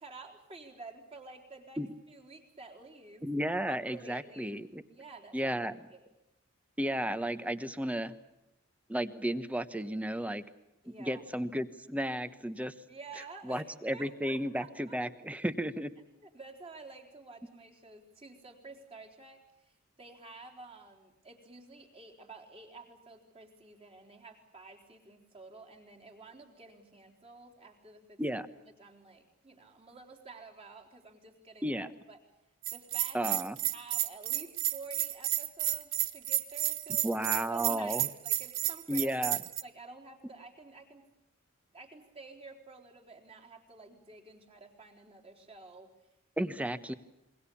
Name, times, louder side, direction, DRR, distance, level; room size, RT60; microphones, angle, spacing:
voice 1, 0.0-3.2 3.9-4.6 4.9-5.6 5.9-6.1 10.8-11.3 12.9-15.0 16.2-28.4 28.8-32.2 32.7-33.2 33.7-37.1 37.5-39.1 39.6-41.1 41.7-45.9 46.4-46.5, right 3 dB, 25° right, 3 dB, 3.9 m, -51 dB
voice 2, 3.2-4.8 5.3-5.7 6.8-8.1 8.9-10.4 11.0-12.7 13.5-15.9 28.2-28.5 31.6-31.9 33.1-33.6 37.0-38.1 38.9-39.4 46.4-46.9, equal, 5° right, 12 dB, 1.1 m, -33 dB
Bell, 32.6-39.6, right 14 dB, 60° right, 1.2 m, -31 dB
27.5 x 23.0 x 7.1 m, 0.91 s
head